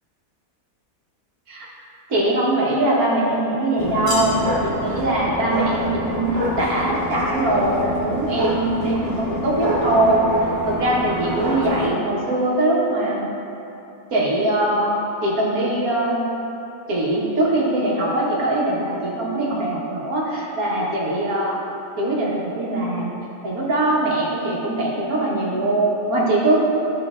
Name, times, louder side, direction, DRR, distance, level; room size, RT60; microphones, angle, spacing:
voice 1, 2.1-4.4 4.6-10.2 10.6-13.3 14.1-15.0 15.2-16.2 16.9-21.6 22.0-23.1 23.4-26.6, right 1 dB, 75° right, -5 dB, 1.8 m, -21 dB
sound 1, 3.8-11.9, equal, 30° right, 1.3 m, -26 dB
12.0 x 5.5 x 2.5 m, 2.9 s
omnidirectional pair, 1.5 m